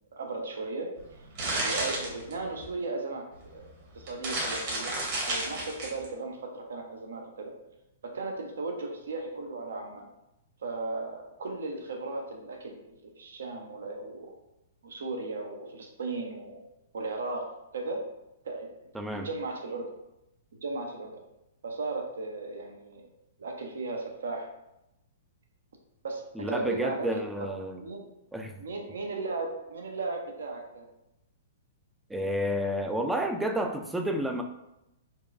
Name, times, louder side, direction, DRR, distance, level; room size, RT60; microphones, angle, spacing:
voice 1, 0.1-0.9 1.6-3.7 3.9-5.0 5.3-7.5 8.0-10.0 10.6-12.8 13.2-14.3 14.8-16.6 16.9-18.0 18.4-18.7 19.1-19.9 20.5-21.1 21.6-23.0 23.4-24.5 26.0-27.2 27.8-28.0 28.6-30.9, right 3 dB, 65° right, 2 dB, 0.6 m, -36 dB
sound 1, 1.0-2.7 3.5-3.6 4.0-6.1, right 2 dB, 45° right, 1.1 m, -31 dB
voice 2, 18.9-19.3 26.4-27.8 28.3-28.6 32.1-34.4, equal, 5° right, 4 dB, 0.3 m, -30 dB
4.2 x 2.3 x 2.4 m, 0.89 s
figure-of-eight pair, 110°, 0 cm